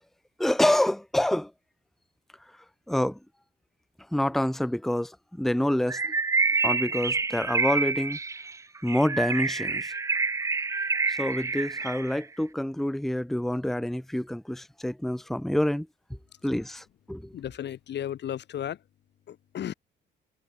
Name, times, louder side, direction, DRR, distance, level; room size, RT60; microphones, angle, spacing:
voice 1, 0.4-1.5 2.9-3.2 4.1-6.1 6.6-8.2 8.8-9.9 11.1-15.9 16.4-17.4, left 1 dB, ahead, 0.9 m, -27 dB
Bird, 5.9-12.2, right 4 dB, 15° right, 0.4 m, -28 dB
voice 2, 17.3-18.8 19.3-19.7, left 10 dB, 60° left, 1.2 m, -34 dB
cardioid pair, 90°, 20 cm